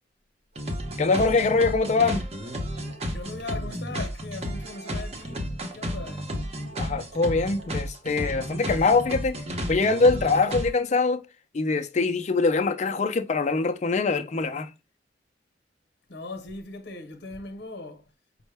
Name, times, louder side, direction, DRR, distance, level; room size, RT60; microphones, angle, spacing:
sound 1, 0.6-10.7, equal, 35° right, 0.8 m, -32 dB
voice 1, 1.0-2.3 6.8-9.4 9.7-11.2 11.5-14.7, left 3 dB, 40° left, 0.4 m, -23 dB
voice 2, 3.1-6.3 16.1-18.1, left 2 dB, 65° left, 0.9 m, -39 dB
5.4 x 2.1 x 3.3 m
head